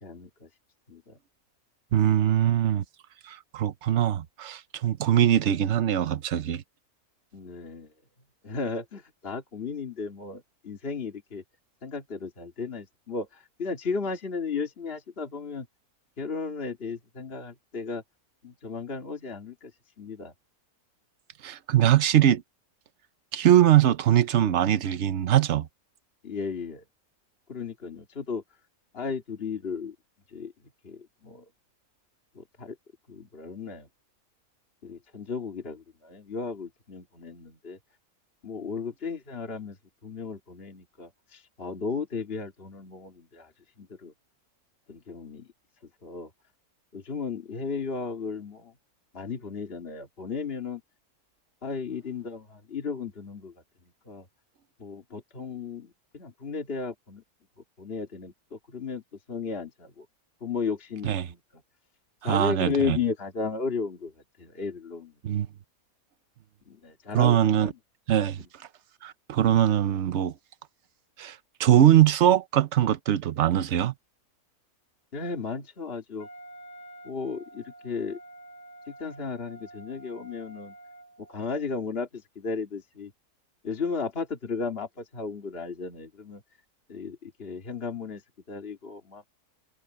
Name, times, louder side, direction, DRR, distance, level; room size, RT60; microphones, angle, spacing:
voice 1, 0.0-0.5 0.9-1.2 7.3-7.9 8.4-11.4 11.8-15.7 16.2-18.0 18.4-19.7 20.0-20.3 26.2-26.8 27.5-28.4 28.9-30.0 30.3-30.5 30.8-31.4 32.4-32.8 33.1-33.9 34.8-37.8 38.4-39.8 40.0-43.5 43.8-44.1 44.9-45.5 46.0-46.3 46.9-48.7 49.1-50.8 51.6-53.5 54.1-54.3 54.8-57.2 57.8-59.0 59.3-60.1 60.4-61.4 62.2-64.1 64.4-65.1 66.7-67.7 75.1-76.3 77.0-78.2 78.9-80.7 81.2-83.1 83.6-86.4 86.9-88.2 88.5-89.2, left 5 dB, 40° left, 2.3 m, -34 dB
voice 2, 1.9-2.8 3.3-6.6 21.4-22.4 23.3-25.7 61.0-61.3 62.2-63.0 65.2-65.5 67.1-67.7 68.1-68.4 69.0-70.3 71.2-73.9, right 11 dB, 55° right, 0.9 m, -22 dB
Wind instrument woodwind instrument, 76.2-81.5, right 1 dB, 80° left, 4.0 m, -48 dB
omnidirectional pair, 1.6 m